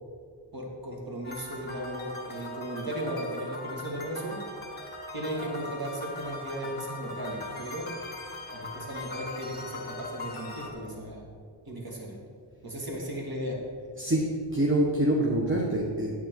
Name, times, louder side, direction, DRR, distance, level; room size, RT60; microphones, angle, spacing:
voice 1, 0.5-4.4 5.1-7.9 8.5-11.2 11.7-12.1 12.6-13.6, right 1 dB, 45° right, -1 dB, 2.3 m, -36 dB
sound 1, 1.2-10.7, left 2 dB, 20° left, 2.4 m, -40 dB
voice 2, 14.0-16.2, right 1 dB, 25° right, -2 dB, 1.3 m, -26 dB
9.2 x 8.7 x 4.6 m, 2.1 s
cardioid pair, 60°, 49 cm